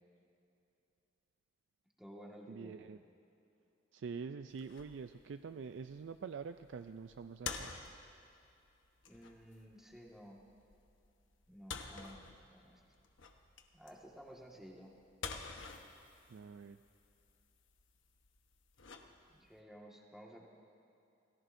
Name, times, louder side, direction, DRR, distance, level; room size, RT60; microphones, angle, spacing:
voice 1, 2.0-2.9 9.1-10.4 11.5-12.8 13.7-14.9 19.3-20.5, equal, 5° right, -2 dB, 1.7 m, -54 dB
voice 2, 2.5-3.0 3.9-7.7 16.3-16.8, right 5 dB, 70° right, 10 dB, 0.4 m, -45 dB
kettle on stove and pickup remove, 4.5-19.6, left 5 dB, 85° left, 1.1 m, -50 dB
28.0 x 18.5 x 2.6 m, 2.7 s
head